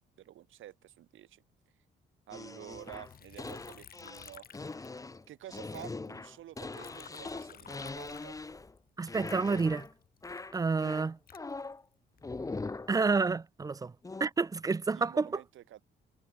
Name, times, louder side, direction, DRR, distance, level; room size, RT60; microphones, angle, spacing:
voice 1, 0.2-1.4 2.3-4.5 5.3-8.4 14.9-15.8, right 13 dB, 80° right, 4.8 m, -50 dB
sound 1, 2.3-8.8 9.1-9.9 10.2-11.8 12.2-13.0 14.0-14.2, left 3 dB, 15° left, 0.8 m, -41 dB
Liquid, 2.7-5.3 5.6-8.8 9.2-12.2 12.8-13.3, left 8 dB, 50° left, 1.3 m, -55 dB
voice 2, 9.0-9.9 10.5-11.2 12.9-13.9 14.2-15.3, right 4 dB, 20° right, 0.4 m, -29 dB
cardioid pair, 90°, 20 cm